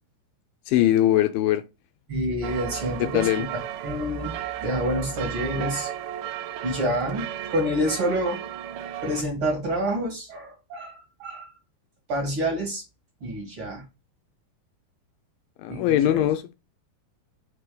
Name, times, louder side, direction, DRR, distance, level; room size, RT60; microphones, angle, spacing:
voice 1, 0.7-1.6 3.0-3.5 15.6-16.5, left 12 dB, 80° left, 2.3 m, -21 dB
voice 2, 2.1-3.5 3.8-4.3 4.6-5.9 6.6-8.4 9.0-11.5 12.1-12.8 13.2-13.8 15.7-16.3, equal, 45° right, 2.2 m, -28 dB
sound 1, 2.4-9.2, right 11 dB, 90° right, 2.5 m, -34 dB
6.0 x 3.3 x 4.9 m
omnidirectional pair, 4.3 m